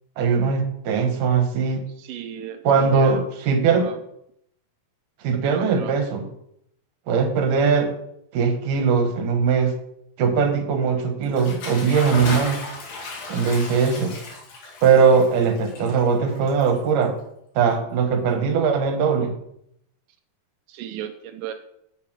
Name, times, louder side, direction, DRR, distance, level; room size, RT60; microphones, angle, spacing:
voice 1, 0.2-1.8 2.6-3.9 5.2-6.3 7.1-7.9 8.3-9.7 10.2-12.6 13.3-14.1 14.8-17.1 17.6-19.3, right 5 dB, 65° right, 6 dB, 2.5 m, -20 dB
voice 2, 2.0-3.2 3.8-4.0 5.3-5.9 20.7-21.5, right 10 dB, 80° right, 5 dB, 1.9 m, -35 dB
Bathtub (filling or washing) / Splash splatter, 11.2-17.2, left 3 dB, 65° left, 4.0 m, -35 dB
8.5 x 6.8 x 6.1 m, 0.76 s
omnidirectional pair, 4.5 m